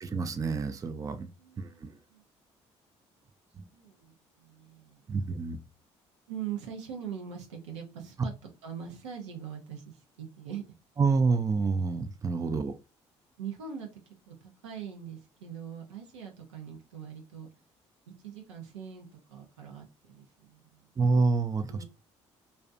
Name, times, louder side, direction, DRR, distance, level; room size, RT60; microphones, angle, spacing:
voice 1, 0.0-1.3 1.6-1.9 3.6-3.7 5.1-5.6 11.0-12.7 21.0-21.8, right 4 dB, 25° right, 9 dB, 0.4 m, -28 dB
voice 2, 1.4-2.2 3.7-5.2 6.3-8.3 8.6-10.6 12.4-12.6 13.4-17.5 18.2-20.9 21.7-21.8, right 8 dB, 90° right, 1 dB, 0.6 m, -42 dB
2.4 x 2.1 x 2.5 m, 0.29 s
hypercardioid pair, 55°, 15 cm